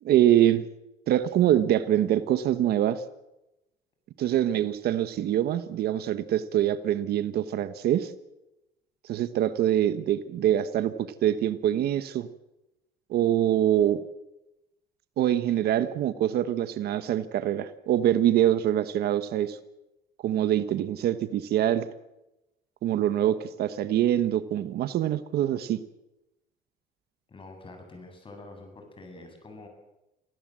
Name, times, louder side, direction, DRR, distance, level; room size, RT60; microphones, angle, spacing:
voice 1, 0.0-0.7 1.1-3.0 4.2-8.1 9.1-12.3 13.1-14.0 15.2-19.6 20.2-21.9 22.8-25.8, right 11 dB, 70° right, 12 dB, 1.3 m, -24 dB
voice 2, 27.3-29.7, left 2 dB, 30° left, 5 dB, 7.6 m, -46 dB
25.5 x 16.5 x 7.6 m, 0.94 s
cardioid pair, 110°, 17 cm